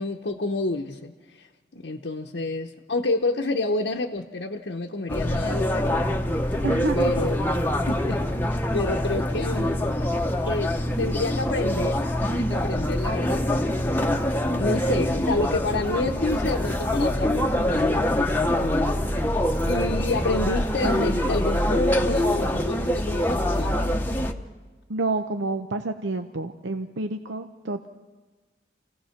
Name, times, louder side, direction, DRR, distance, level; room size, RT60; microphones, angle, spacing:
voice 1, 0.0-1.5 1.7-6.2 6.9-7.4 7.9-8.2 8.7-9.8 10.4-24.1, left 2 dB, 65° left, 0 dB, 0.9 m, -29 dB
sound 1, 5.1-24.3, left 1 dB, 10° left, 0.9 m, -24 dB
voice 2, 6.6-7.3 24.9-27.9, right 3 dB, 80° right, 6 dB, 0.8 m, -29 dB
28.0 x 16.5 x 5.8 m, 1.3 s
head